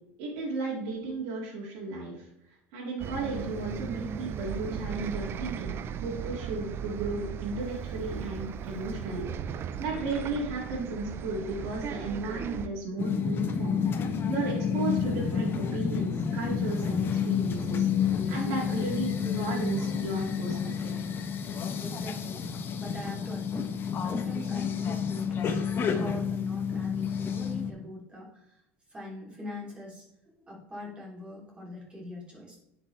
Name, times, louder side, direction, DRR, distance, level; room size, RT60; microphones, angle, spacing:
voice 1, 0.2-2.3 2.7-5.7 6.0-9.2 9.8-13.8 14.3-20.9, right 3 dB, 70° right, -5 dB, 2.2 m, -34 dB
Bus, 3.0-12.7, right 8 dB, 35° right, 0.5 m, -37 dB
sound 1, 13.0-27.7, left 7 dB, 35° left, 0.9 m, -30 dB
voice 2, 21.8-22.5 22.8-25.6 25.9-28.6 28.9-30.1 30.5-32.6, left 1 dB, 15° right, -4 dB, 3.0 m, -42 dB
10.0 x 5.3 x 3.3 m, 0.84 s
supercardioid pair, 135°, 7 cm